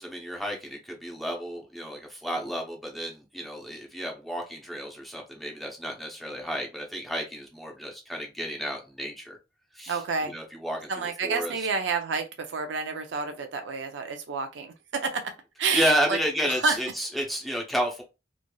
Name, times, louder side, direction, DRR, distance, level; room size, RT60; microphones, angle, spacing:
voice 1, 0.0-9.4 9.7-10.0 10.3-11.5 15.7-18.0, equal, ahead, 0.7 m, -31 dB
voice 2, 9.9-10.3 10.9-15.3 15.6-16.2 16.5-16.8, right 4 dB, 75° right, 0.5 m, -29 dB
3.1 x 2.6 x 2.2 m
head